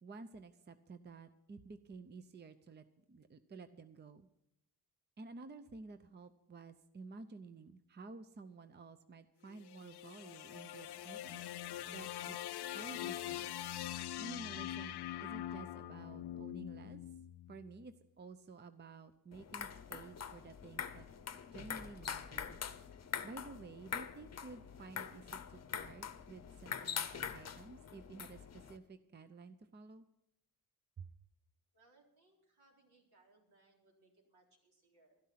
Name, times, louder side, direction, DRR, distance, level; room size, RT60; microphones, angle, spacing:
voice 1, 0.0-4.3 5.2-11.5 11.9-12.4 12.7-13.5 14.2-17.0 17.5-21.1 21.5-22.6 23.2-30.0 31.0-31.1, right 3 dB, 25° right, 10 dB, 0.6 m, -52 dB
sound 1, 9.5-17.8, left 12 dB, 90° left, 0.5 m, -43 dB
voice 2, 10.6-11.6 24.9-25.5 31.7-35.2, right 2 dB, 75° right, -1 dB, 3.9 m, -69 dB
sound 2, 17.9-18.0 20.5-20.6 21.7-23.3, left 4 dB, 25° left, 1.0 m, -59 dB
sound 3, 19.3-28.8, left 7 dB, 40° left, 0.8 m, -44 dB
12.5 x 12.5 x 5.8 m, 0.81 s
wide cardioid pair, 130°, 38 cm